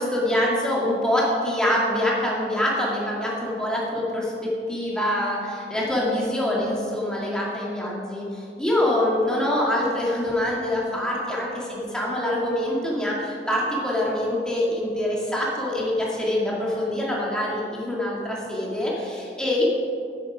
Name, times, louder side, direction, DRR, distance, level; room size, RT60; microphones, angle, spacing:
voice 1, 0.0-19.6, left 1 dB, 5° left, -5 dB, 2.0 m, -25 dB
9.0 x 8.5 x 4.9 m, 2.4 s
head